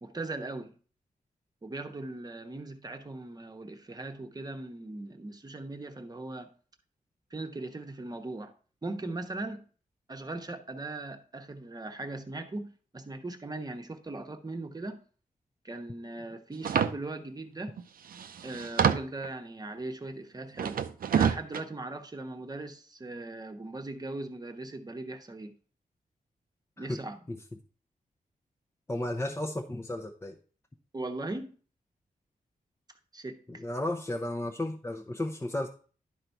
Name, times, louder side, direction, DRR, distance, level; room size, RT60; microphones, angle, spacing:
voice 1, 0.0-0.7 1.6-6.5 7.3-8.5 8.8-9.6 10.1-15.0 15.6-17.8 18.4-20.8 21.1-25.5 26.8-27.2 30.9-31.5 33.1-33.6, right 2 dB, 25° right, 1.0 m, -39 dB
sound 1, 16.6-16.9 17.8-17.9 18.1-19.3 20.6-21.6, right 7 dB, 80° right, 0.6 m, -27 dB
voice 2, 28.9-30.4 33.5-35.7, left 1 dB, 15° left, 0.7 m, -33 dB
11.0 x 4.0 x 4.5 m
wide cardioid pair, 110°, 15 cm